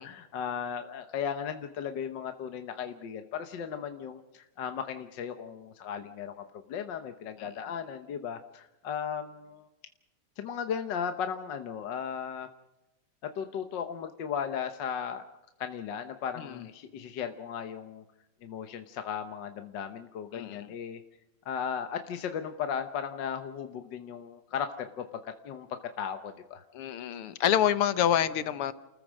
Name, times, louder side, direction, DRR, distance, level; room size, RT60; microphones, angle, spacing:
voice 1, 0.0-9.7 10.4-12.5 13.2-15.2 15.6-18.0 18.4-21.0 21.4-26.6, left 7 dB, 60° left, 7 dB, 1.6 m, -36 dB
voice 2, 20.3-20.7 26.7-28.7, left 10 dB, 85° left, 13 dB, 1.9 m, -27 dB
30.0 x 14.5 x 6.3 m, 0.98 s
omnidirectional pair, 2.4 m